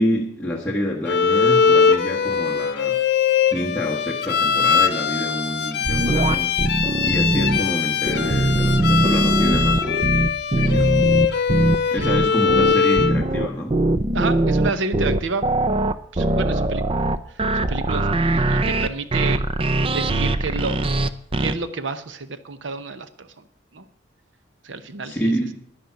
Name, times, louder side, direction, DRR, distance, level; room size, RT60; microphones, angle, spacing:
voice 1, 0.0-3.0 3.5-6.6 7.0-10.0 10.6-10.9 11.9-13.8 25.0-25.5, equal, 5° left, -5 dB, 1.4 m, -27 dB
Bowed string instrument, 1.1-13.2, left 6 dB, 60° left, 0.9 m, -21 dB
sound 1, 5.8-7.6 8.1-21.6, right 2 dB, 30° right, 0.5 m, -21 dB
voice 2, 14.1-15.4 16.1-16.8 17.5-19.4 19.9-20.9 21.4-23.3 23.7-23.8 24.6-25.3, right 4 dB, 70° right, 12 dB, 0.8 m, -29 dB
11.0 x 10.5 x 5.8 m, 0.65 s
head